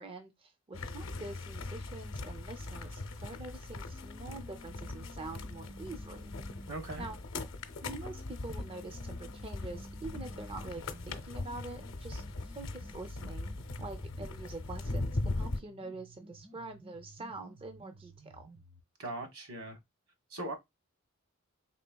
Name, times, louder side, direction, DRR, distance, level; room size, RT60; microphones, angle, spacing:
voice 1, 0.0-6.3 7.0-7.2 7.8-13.5 13.8-18.5, right 2 dB, 25° right, 0.4 m, -45 dB
sound 1, 0.7-15.6, left 2 dB, 60° left, 0.6 m, -40 dB
sound 2, 3.9-7.2 7.9-14.9 15.4-18.9, equal, 70° right, 1.6 m, -54 dB
voice 2, 6.7-7.0 19.0-19.8 20.3-20.5, right 2 dB, 90° right, 1.3 m, -39 dB
4.3 x 3.4 x 2.2 m
head